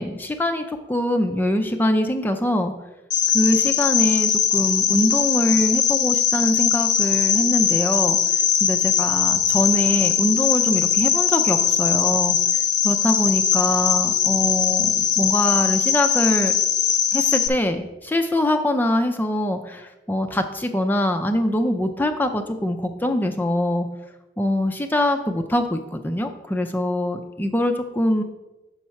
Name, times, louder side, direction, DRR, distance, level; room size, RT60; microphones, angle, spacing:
voice 1, 0.0-2.7 3.3-8.2 8.6-12.4 12.8-16.5 17.1-23.9 24.4-28.2, left 1 dB, 10° left, 5 dB, 0.4 m, -23 dB
Cricket, 3.1-17.5, left 8 dB, 80° left, 0.5 m, -20 dB
7.1 x 4.2 x 5.7 m, 1.0 s
head